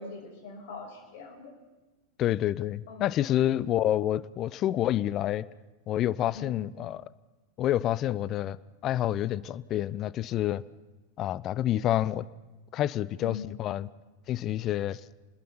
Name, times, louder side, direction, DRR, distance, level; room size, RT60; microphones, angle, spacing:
voice 1, 0.0-1.5 2.9-3.1 6.3-6.6 13.2-13.5, left 4 dB, 50° left, 3 dB, 6.6 m, -42 dB
voice 2, 2.2-5.5 5.9-7.0 7.6-8.6 8.8-10.6 11.2-12.2 12.7-13.9 14.3-15.0, left 12 dB, 35° left, 21 dB, 0.6 m, -28 dB
30.0 x 21.0 x 4.5 m, 1.2 s
figure-of-eight pair, 90°, 0 cm